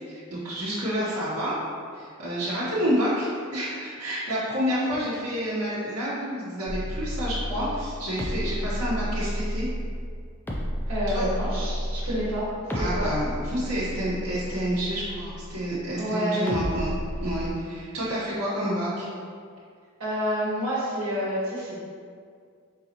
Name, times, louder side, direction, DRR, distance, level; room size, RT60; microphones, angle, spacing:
voice 1, 0.1-1.5 1.9-9.7 11.1-11.2 12.1-12.2 12.7-16.9 17.2-19.1, equal, 80° right, -10 dB, 1.0 m, -29 dB
sound 1, 6.7-15.9 16.5-17.5, equal, 10° left, 0.4 m, -31 dB
voice 2, 10.9-13.1 15.9-16.5 20.0-21.9, equal, 65° right, -8 dB, 1.4 m, -28 dB
3.9 x 3.9 x 2.9 m, 2.2 s
head